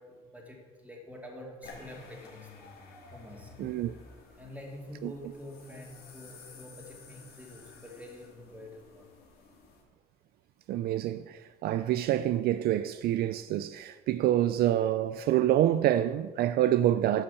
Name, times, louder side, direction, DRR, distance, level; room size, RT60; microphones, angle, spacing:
voice 1, 0.0-2.5 3.1-3.8 4.4-9.1, left 1 dB, 10° right, 2.6 m, -46 dB
sound 1, 1.6-9.8, left 4 dB, 65° left, 2.7 m, -52 dB
voice 2, 3.6-3.9 5.0-5.1 10.7-17.2, right 12 dB, 65° right, 0.4 m, -27 dB
11.5 x 5.8 x 7.0 m
cardioid pair, 110°, 17 cm